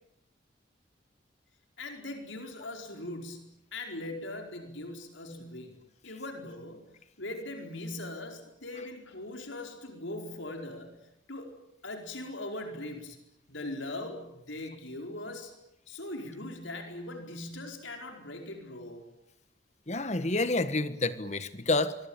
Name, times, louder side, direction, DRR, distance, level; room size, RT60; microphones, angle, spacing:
voice 1, 1.8-5.8 6.0-6.9 7.2-11.0 11.3-11.5 11.8-13.2 13.5-15.5 15.9-19.0, left 2 dB, 85° left, 3 dB, 4.7 m, -40 dB
voice 2, 19.9-22.0, left 2 dB, 35° left, 12 dB, 1.4 m, -29 dB
24.5 x 24.0 x 8.9 m, 0.82 s
head